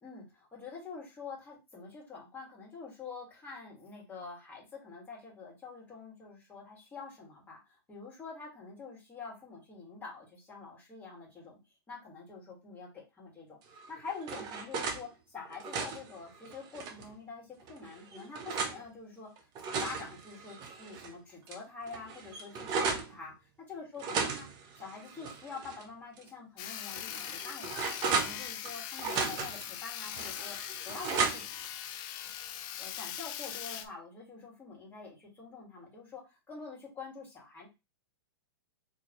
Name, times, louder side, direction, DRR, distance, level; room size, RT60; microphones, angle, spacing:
voice 1, 0.0-11.6 11.9-13.6 13.9-19.3 19.8-23.3 23.7-24.5 24.8-27.8 28.2-30.6 30.8-31.4 32.8-36.2 36.5-37.7, left 4 dB, 10° left, -4 dB, 1.8 m, -46 dB
sound 1, 13.7-15.0 15.5-17.1 17.7-18.8 19.4-21.1 21.5-21.6 21.9-23.1 24.0-25.8 26.2-26.3 26.9-28.7 29.0-29.7 30.2-31.7, right 5 dB, 30° right, 0.8 m, -35 dB
Sawing, 26.6-33.9, left 10 dB, 30° left, 0.4 m, -41 dB
3.9 x 2.8 x 3.0 m, 0.26 s
hypercardioid pair, 135°, 13 cm